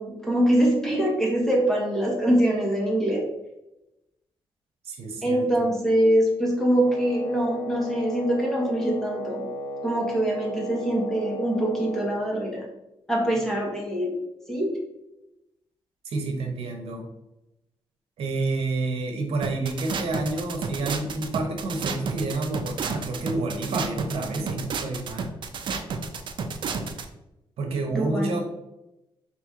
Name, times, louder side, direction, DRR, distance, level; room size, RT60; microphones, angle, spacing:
voice 1, 0.0-3.2 5.2-9.4 9.8-12.7 13.1-14.2 14.5-14.7 27.9-28.3, right 1 dB, 5° left, -2 dB, 1.2 m, -24 dB
voice 2, 4.8-5.7 16.0-17.1 18.2-25.3 27.6-28.4, right 2 dB, 80° right, 3 dB, 0.8 m, -29 dB
Wind instrument woodwind instrument, 6.8-12.2, equal, 85° left, 0.6 m, -34 dB
sound 1, 19.4-27.0, right 5 dB, 55° right, 0.5 m, -31 dB
4.3 x 3.0 x 3.6 m, 0.92 s
wide cardioid pair, 140°, 10 cm